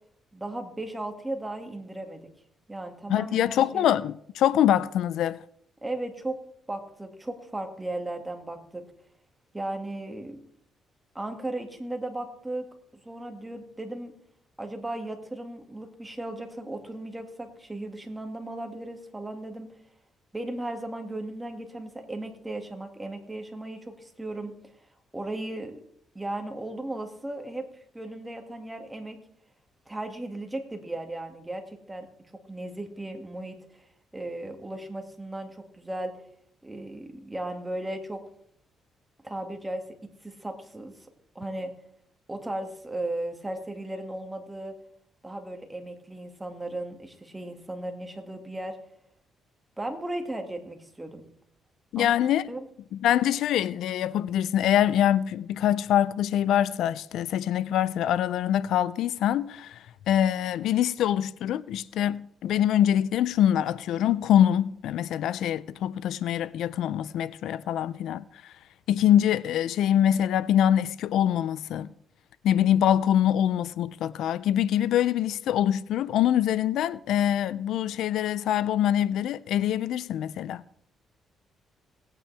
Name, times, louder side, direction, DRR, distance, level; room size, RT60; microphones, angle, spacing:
voice 1, 0.3-2.3 2.7-3.9 5.8-6.4 6.7-8.8 9.5-10.4 11.1-12.7 13.0-14.1 14.6-19.7 20.3-24.6 25.1-25.8 26.1-27.7 27.9-29.2 29.9-32.1 32.3-33.6 34.1-36.1 36.6-38.3 39.2-41.0 41.4-41.7 42.3-44.8 45.2-48.8 49.8-51.3 52.0-52.1 52.5-52.7, right 1 dB, 15° right, 2.0 m, -36 dB
voice 2, 3.1-5.4 51.9-52.5 52.9-68.5 68.9-71.9 72.4-80.6, left 10 dB, 80° left, 0.4 m, -24 dB
18.5 x 9.0 x 3.4 m
cardioid pair, 90°, 0 cm